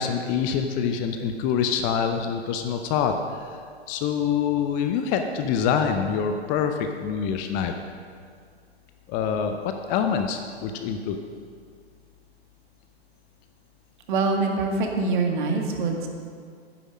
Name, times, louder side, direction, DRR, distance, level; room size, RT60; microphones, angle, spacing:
voice 1, 0.0-7.7 9.1-11.2, left 7 dB, 25° left, 6 dB, 0.6 m, -26 dB
voice 2, 14.1-16.1, right 3 dB, 50° right, 2 dB, 1.9 m, -24 dB
10.0 x 10.0 x 6.2 m, 2.1 s
figure-of-eight pair, 110°, 32 cm